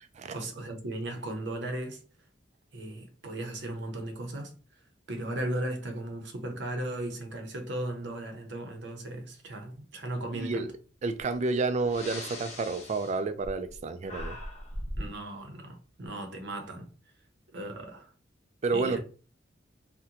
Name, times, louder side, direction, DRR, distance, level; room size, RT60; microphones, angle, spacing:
voice 1, 0.3-2.0 2.7-4.5 5.1-10.7 15.0-16.9 17.5-18.1 18.7-19.0, right 1 dB, 65° right, 0.7 m, -36 dB
voice 2, 10.3-10.7 11.0-14.4 18.6-19.0, right 3 dB, 40° right, 0.3 m, -30 dB
Breathing, 11.2-11.3 11.8-13.8 14.0-15.1, left 1 dB, 35° left, 0.8 m, -39 dB
2.8 x 2.1 x 3.7 m
head